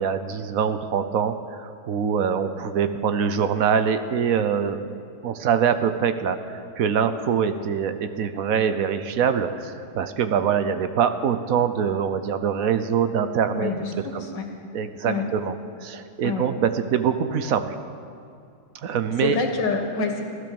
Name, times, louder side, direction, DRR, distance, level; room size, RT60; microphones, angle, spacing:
voice 1, 0.0-4.8 5.2-6.4 6.8-13.7 14.1-14.2 14.7-15.5 15.8-17.7 18.8-19.4, right 7 dB, 60° right, 10 dB, 1.0 m, -24 dB
voice 2, 13.5-14.4 15.0-15.3 16.2-16.5 19.2-20.2, left 4 dB, 65° left, 3 dB, 2.3 m, -27 dB
15.5 x 13.0 x 7.0 m, 2.4 s
omnidirectional pair, 2.0 m